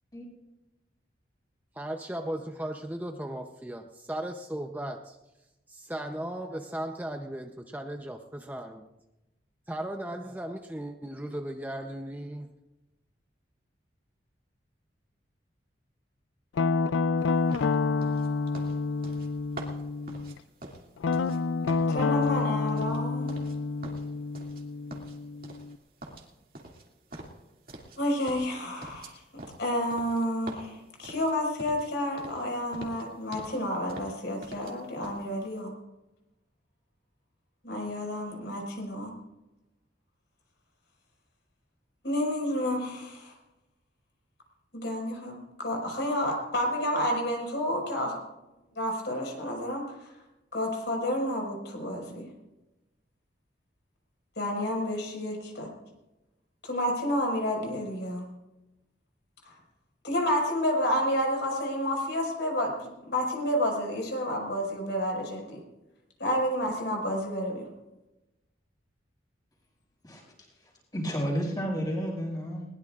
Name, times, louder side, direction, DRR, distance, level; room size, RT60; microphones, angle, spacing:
voice 1, 1.7-5.2 5.7-8.9 9.7-12.5, right 1 dB, 10° right, 4 dB, 0.6 m, -36 dB
Guitar, 16.6-20.3 21.0-25.8, left 4 dB, 90° left, 0.4 m, -28 dB
sound 1, 17.5-21.4 21.7-23.6 23.8-24.6 24.9-25.7 26.0-28.0 28.3-31.9 32.2-32.4 32.7-33.6 33.9-34.7 35.0-35.2, right 1 dB, 50° right, 2.4 m, -45 dB
voice 2, 21.9-23.4 28.0-29.1 29.6-35.7 37.6-39.2 42.0-43.3 44.7-48.2 48.8-50.1 50.5-52.3 54.4-55.7 56.6-58.3 59.4-59.5 60.0-62.7 63.0-65.6 66.2-67.7, equal, 70° left, 0 dB, 5.2 m, -30 dB
voice 3, 70.0-70.5 70.9-72.7, equal, 20° left, -3 dB, 5.9 m, -31 dB
21.0 x 20.0 x 2.5 m, 0.99 s
head